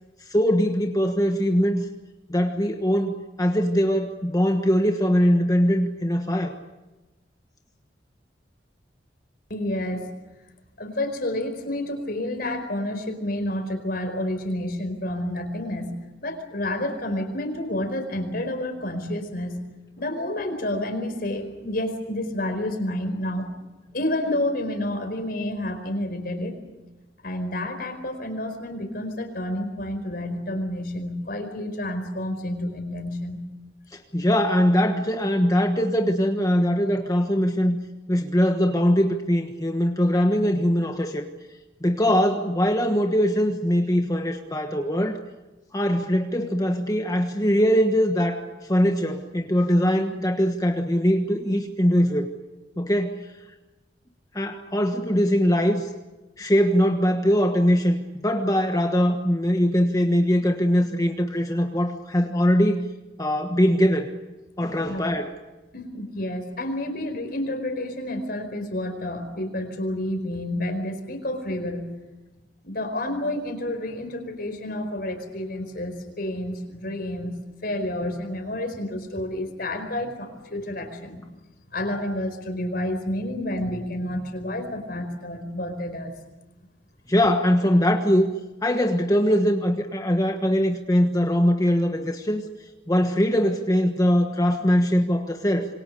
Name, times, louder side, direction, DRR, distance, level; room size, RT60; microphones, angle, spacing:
voice 1, 0.3-1.9 2.3-6.6 33.9-37.8 38.1-41.3 41.8-45.2 45.7-52.3 52.8-53.3 54.3-55.9 56.4-62.9 63.2-64.1 64.6-65.3 87.1-88.3 88.6-92.4 92.9-95.7, equal, 20° left, 4 dB, 1.3 m, -22 dB
voice 2, 9.5-10.1 10.8-19.6 20.0-23.5 23.9-26.6 27.2-33.4 64.8-65.0 65.7-72.0 72.6-81.2 81.7-86.1, left 1 dB, 55° left, 6 dB, 4.9 m, -29 dB
27.0 x 24.0 x 6.9 m, 1.1 s
head